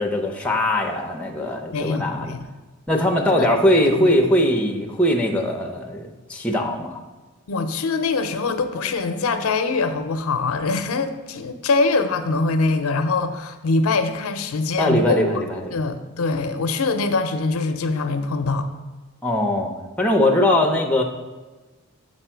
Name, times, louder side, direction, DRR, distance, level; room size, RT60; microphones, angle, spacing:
voice 1, 0.0-2.3 2.9-7.0 14.8-15.8 19.2-19.7 20.0-21.0, left 1 dB, 5° left, 2 dB, 0.6 m, -21 dB
voice 2, 1.7-2.5 3.4-3.5 4.0-4.1 7.5-15.2 15.7-18.7, left 3 dB, 85° left, 8 dB, 0.5 m, -23 dB
7.3 x 4.3 x 4.5 m, 1.2 s
head